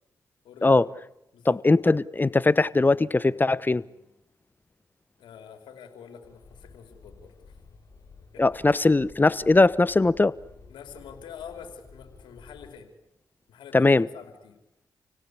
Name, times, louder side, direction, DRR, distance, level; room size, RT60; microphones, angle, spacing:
voice 1, 0.4-0.8 1.3-1.6 5.2-7.6 8.3-8.8 10.7-12.9 13.5-14.6, left 7 dB, 80° left, 5 dB, 4.9 m, -46 dB
voice 2, 1.4-3.8 8.4-10.3 13.7-14.1, left 3 dB, 25° left, 19 dB, 1.0 m, -20 dB
sound 1, 6.2-12.7, left 4 dB, 45° left, 6.8 m, -52 dB
29.5 x 17.5 x 8.6 m, 0.85 s
supercardioid pair, 55°, 8 cm